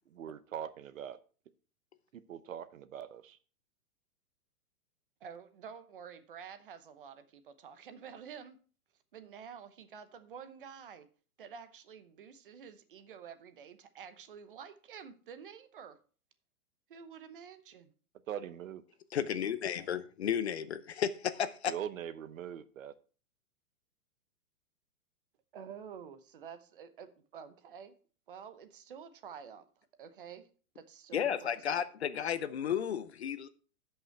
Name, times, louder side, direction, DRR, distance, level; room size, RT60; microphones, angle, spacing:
voice 1, 0.1-1.2 2.1-3.4 18.3-18.8 21.7-22.9, right 9 dB, 65° right, 0.9 m, -42 dB
voice 2, 5.2-8.6 9.1-11.1 11.4-16.0 16.9-17.9 25.5-27.9 28.3-30.5 30.7-31.5, right 7 dB, 35° right, 0.9 m, -49 dB
voice 3, 19.1-21.7 31.1-33.5, left 8 dB, 50° left, 0.6 m, -33 dB
12.0 x 5.7 x 4.4 m
hypercardioid pair, 180°, 43 cm